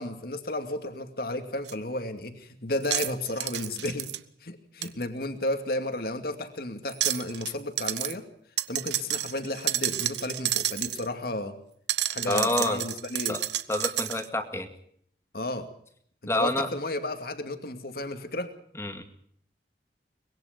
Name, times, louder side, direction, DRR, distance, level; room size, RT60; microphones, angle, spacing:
voice 1, 0.0-4.1 4.4-8.2 8.7-11.6 12.1-13.4 15.3-15.7 16.3-18.5, left 1 dB, 55° left, 7 dB, 2.4 m, -33 dB
sound 1, 1.7-1.8 2.8-4.2 4.8-4.9 6.9-7.5 7.8-8.1 8.6-11.1 11.9-14.3, right 13 dB, 85° right, 1.1 m, -30 dB
voice 2, 12.3-12.8 13.3-13.4 13.7-14.7 16.3-16.7 18.8-19.0, left 1 dB, 15° left, 7 dB, 2.1 m, -27 dB
24.0 x 21.0 x 5.2 m, 0.65 s
head